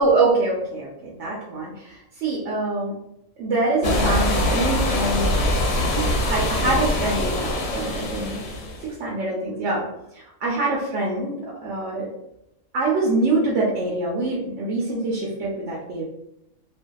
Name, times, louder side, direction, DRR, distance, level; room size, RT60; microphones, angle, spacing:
voice 1, 0.0-2.9 3.4-5.3 5.8-8.3 8.8-9.8 10.1-12.1 12.7-16.0, right 2 dB, 65° right, -5 dB, 0.9 m, -24 dB
sound 1, 3.8-8.9, left 1 dB, 60° left, 0.8 m, -23 dB
2.6 x 2.3 x 2.3 m, 0.81 s
omnidirectional pair, 1.4 m